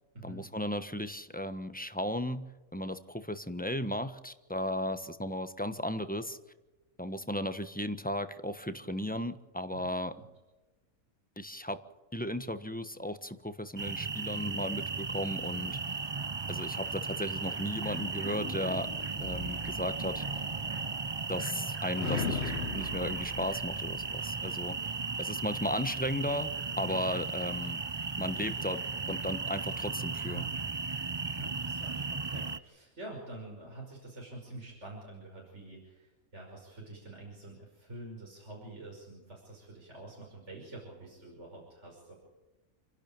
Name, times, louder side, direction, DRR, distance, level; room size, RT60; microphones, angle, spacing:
voice 1, 0.2-6.4 7.0-10.1 11.4-11.8 12.1-15.8 16.5-18.9 19.2-20.2 21.3-22.4 22.7-24.8 25.2-27.8 28.2-30.4, left 1 dB, 5° left, 10 dB, 1.1 m, -35 dB
sound 1, 13.8-32.6, right 4 dB, 30° right, 0.5 m, -36 dB
sound 2, 18.2-21.6 22.0-24.6, left 4 dB, 50° left, 1.5 m, -40 dB
voice 2, 31.3-42.1, right 2 dB, 55° right, -2 dB, 6.0 m, -47 dB
29.0 x 11.5 x 8.9 m, 1.1 s
omnidirectional pair, 1.5 m